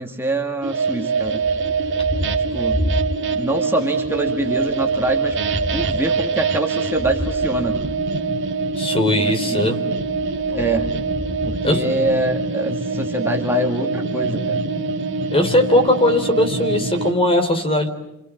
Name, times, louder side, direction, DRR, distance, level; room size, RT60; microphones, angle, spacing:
voice 1, 0.0-1.4 2.5-2.8 3.3-5.4 5.7-7.8 9.2-9.7 10.5-10.9 11.4-14.6, right 1 dB, 10° right, 1 dB, 2.3 m, -24 dB
sound 1, 0.6-17.1, right 4 dB, 55° right, 2.0 m, -24 dB
Thunder, 1.2-3.7 4.0-8.8 9.9-12.5, equal, 45° left, 2.3 m, -31 dB
voice 2, 8.8-9.8 11.6-11.9 15.3-17.9, left 1 dB, 25° left, 6 dB, 4.0 m, -19 dB
29.0 x 27.5 x 7.4 m, 0.89 s
head